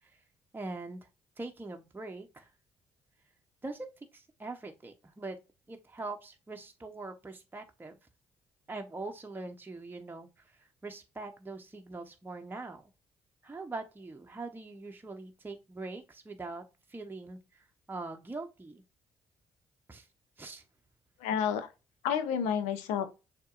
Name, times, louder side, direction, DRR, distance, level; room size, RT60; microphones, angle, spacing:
voice 1, 0.5-1.1 1.4-2.5 3.6-5.4 5.7-8.0 8.7-12.9 13.4-16.6 16.9-18.8 19.9-20.1 20.4-20.6, right 3 dB, 15° right, 0.9 m, -42 dB
voice 2, 21.2-21.7 22.0-23.1, left 8 dB, 85° left, 0.7 m, -30 dB
6.4 x 2.9 x 2.5 m
hypercardioid pair, 50°, 12 cm